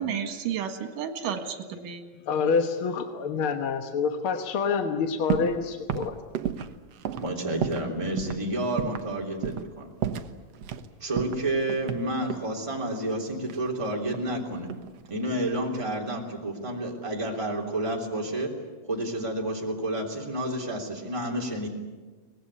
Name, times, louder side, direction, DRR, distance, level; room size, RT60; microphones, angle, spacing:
voice 1, 0.0-2.0, right 8 dB, 85° right, 7 dB, 3.3 m, -32 dB
voice 2, 2.3-6.2, left 5 dB, 55° left, 6 dB, 1.6 m, -27 dB
sound 1, 5.3-5.6 5.9-7.9 8.2-8.4 8.8-9.1 9.4-9.7 10.0-10.9 11.2-12.5 13.5-14.4 14.7-15.1, right 9 dB, 65° right, 1.9 m, -32 dB
voice 3, 7.2-9.9 11.0-14.7 15.1-18.5 18.8-21.7, right 1 dB, 10° right, 0 dB, 3.0 m, -30 dB
24.0 x 19.0 x 9.8 m, 1.3 s
omnidirectional pair, 3.7 m